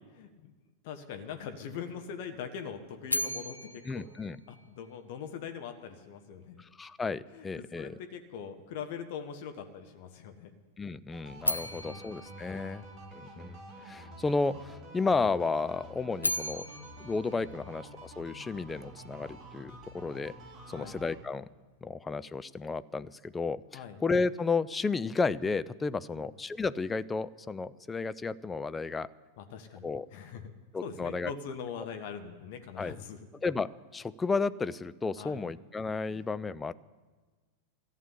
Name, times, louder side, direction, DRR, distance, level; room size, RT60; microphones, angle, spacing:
voice 1, 0.1-0.5 0.8-4.1 4.5-6.6 7.3-10.5 11.8-12.1 12.5-12.8 20.7-21.0 23.7-24.0 26.1-26.3 29.4-30.5 30.8-33.2 35.2-35.5 36.1-36.3, left 7 dB, 50° left, 7 dB, 1.1 m, -42 dB
sound 1, 3.1-5.2 11.4-13.6 15.9-18.4, left 1 dB, 85° left, 0.5 m, -37 dB
voice 2, 3.9-4.4 6.6-8.0 10.8-12.8 13.1-13.6 13.8-16.7 17.0-20.3 20.7-21.4 21.8-29.1 29.8-30.1 30.7-31.3 32.8-33.0 33.4-36.7, left 4 dB, 15° left, 14 dB, 0.4 m, -32 dB
sound 2, 11.1-21.1, right 1 dB, 20° right, 4.0 m, -48 dB
14.0 x 7.4 x 9.9 m, 1.3 s
figure-of-eight pair, 90°, 0 cm